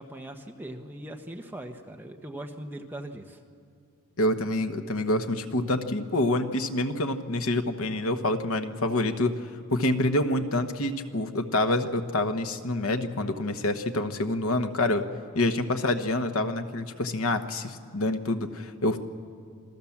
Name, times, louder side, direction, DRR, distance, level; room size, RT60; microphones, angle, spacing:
voice 1, 0.0-3.4 15.4-15.5, right 1 dB, 10° right, 3 dB, 1.1 m, -40 dB
voice 2, 4.2-9.3 9.7-15.0 15.3-19.0, left 1 dB, 75° left, 7 dB, 1.2 m, -27 dB
27.0 x 17.0 x 7.3 m, 2.5 s
head